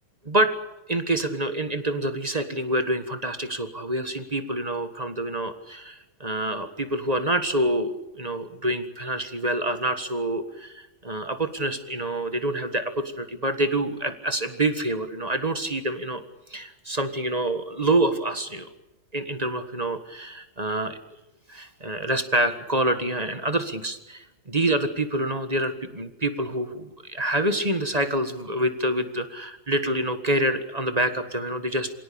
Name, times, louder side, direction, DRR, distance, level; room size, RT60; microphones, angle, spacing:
voice 1, 0.9-16.2 16.5-18.7 19.1-21.0 21.5-31.9, right 1 dB, 20° right, 9 dB, 1.5 m, -27 dB
26.0 x 17.5 x 8.6 m, 0.97 s
omnidirectional pair, 2.1 m